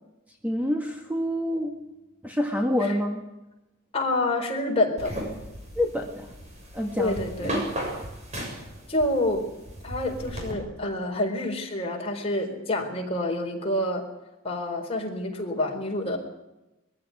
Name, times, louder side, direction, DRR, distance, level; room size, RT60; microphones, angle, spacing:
voice 1, 0.4-1.8 2.2-3.2 5.7-6.3 6.7-7.2 7.5-7.6, left 1 dB, 10° right, 2 dB, 1.7 m, -27 dB
voice 2, 3.9-5.1 7.0-7.7 8.9-9.5 9.8-14.0 14.4-16.2, left 1 dB, 30° left, 1 dB, 4.4 m, -27 dB
sound 1, 5.0-10.5, right 1 dB, 35° right, 6.8 m, -35 dB
21.5 x 15.5 x 9.8 m, 0.97 s
head